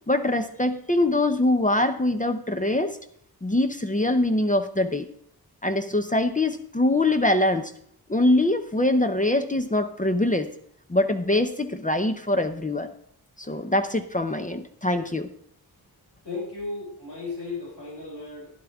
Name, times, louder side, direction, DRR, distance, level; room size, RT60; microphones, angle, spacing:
voice 1, 0.1-3.0 3.4-5.1 5.6-7.7 8.1-10.5 10.9-12.9 13.4-15.3, left 1 dB, 20° left, 8 dB, 0.7 m, -23 dB
voice 2, 16.2-18.5, left 3 dB, 85° left, -4 dB, 5.8 m, -35 dB
11.5 x 11.0 x 3.6 m, 0.66 s
wide cardioid pair, 105°, 39 cm